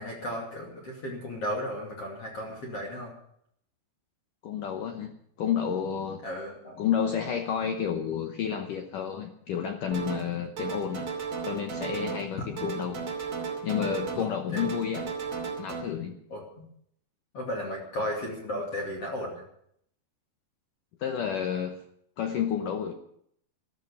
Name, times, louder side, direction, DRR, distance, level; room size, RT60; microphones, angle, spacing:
voice 1, 0.0-3.1 6.2-6.8 14.2-14.7 16.3-16.7 17.3-19.3, equal, 40° left, -1 dB, 2.9 m, -35 dB
voice 2, 4.4-6.2 6.8-11.1 11.4-13.1 13.6-15.1 15.6-16.2 21.0-21.8 22.2-22.9, left 8 dB, 80° left, 6 dB, 1.9 m, -30 dB
sound 1, 9.9-10.3 10.6-12.3 12.6-14.3 14.6-15.8, right 6 dB, 40° right, 3.2 m, -34 dB
14.0 x 13.5 x 7.0 m, 0.70 s
omnidirectional pair, 5.1 m